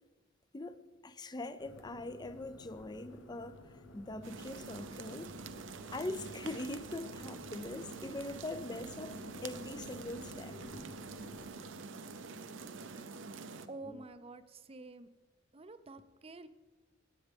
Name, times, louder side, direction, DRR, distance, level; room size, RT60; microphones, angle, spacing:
voice 1, 0.5-3.6 3.9-5.3 5.9-9.2 9.4-10.9 12.3-12.5, left 2 dB, 20° left, 0.5 m, -42 dB
sound 1, 1.6-11.5, left 1 dB, 70° left, 1.1 m, -54 dB
sound 2, 4.2-13.7, right 4 dB, 70° right, 0.7 m, -46 dB
sound 3, 8.1-14.1, left 1 dB, 45° left, 0.9 m, -57 dB
voice 2, 13.7-15.1 15.5-16.5, right 2 dB, 30° right, 0.6 m, -48 dB
17.5 x 8.6 x 3.5 m
head